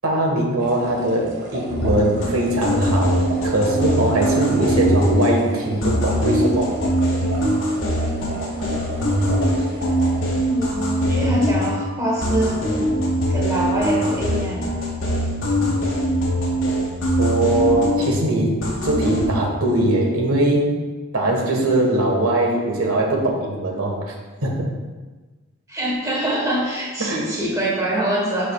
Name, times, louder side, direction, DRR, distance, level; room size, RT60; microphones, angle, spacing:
voice 1, 0.0-6.7 17.2-20.7 21.1-24.1 24.4-24.7 27.0-27.2, right 1 dB, 90° right, 0 dB, 1.6 m, -21 dB
sound 1, 0.6-10.2, right 1 dB, 55° right, 1.7 m, -34 dB
sound 2, 1.7-5.5 5.8-11.9 12.2-18.3 18.6-19.3, equal, 60° left, 1.8 m, -22 dB
voice 2, 10.4-12.7 13.3-14.6 25.7-28.5, right 1 dB, 15° right, -4 dB, 1.4 m, -24 dB
11.5 x 5.1 x 2.4 m, 1.3 s
head